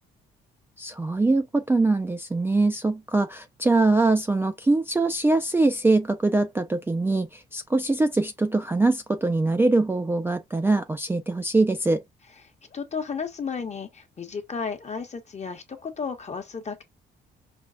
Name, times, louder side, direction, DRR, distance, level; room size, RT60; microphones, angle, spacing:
voice 1, 0.8-12.0, right 2 dB, 10° right, 0.3 m, -23 dB
voice 2, 12.7-16.8, left 5 dB, 35° left, 1.0 m, -33 dB
5.1 x 2.3 x 2.3 m
cardioid pair, 90°, 20 cm